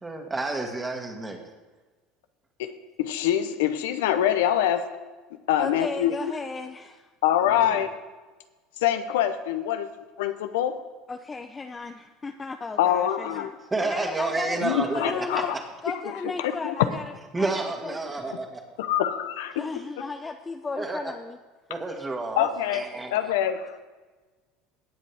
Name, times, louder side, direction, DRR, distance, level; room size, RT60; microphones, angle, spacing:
voice 1, 0.0-1.4 7.6-7.8 13.7-15.0 15.3-15.6 17.3-18.6 20.8-21.0 21.7-23.2, right 3 dB, 20° right, 3 dB, 2.1 m, -30 dB
voice 2, 3.0-4.8 5.5-6.1 7.2-7.9 8.8-9.9 10.2-10.8 12.8-13.5 14.6-15.5 16.4-16.7 18.8-19.5 22.4-22.8 23.1-23.8, left 11 dB, 80° left, 10 dB, 0.7 m, -24 dB
voice 3, 5.6-7.1 11.1-15.5 15.8-18.3 19.5-21.4 22.4-22.5, left 4 dB, 20° left, 6 dB, 0.6 m, -35 dB
17.5 x 7.5 x 3.5 m, 1.3 s
hypercardioid pair, 85°, 0 cm